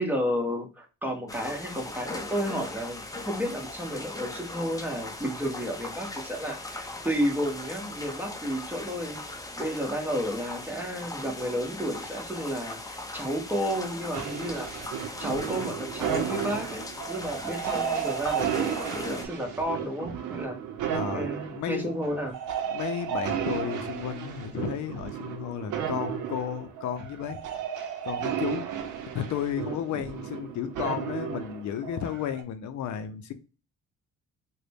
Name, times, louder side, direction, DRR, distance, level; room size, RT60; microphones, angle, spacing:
voice 1, 0.0-9.2 9.6-14.7 15.2-20.6 21.1-22.3, equal, 5° right, 1.1 m, -32 dB
sound 1, 1.3-19.3, left 2 dB, 10° left, 0.7 m, -39 dB
sound 2, 14.1-32.4, right 8 dB, 85° right, 0.7 m, -33 dB
voice 2, 20.8-22.0 22.7-27.4 28.0-28.7 29.1-33.3, left 9 dB, 70° left, 0.6 m, -33 dB
3.8 x 2.2 x 3.4 m
cardioid pair, 90°, 30 cm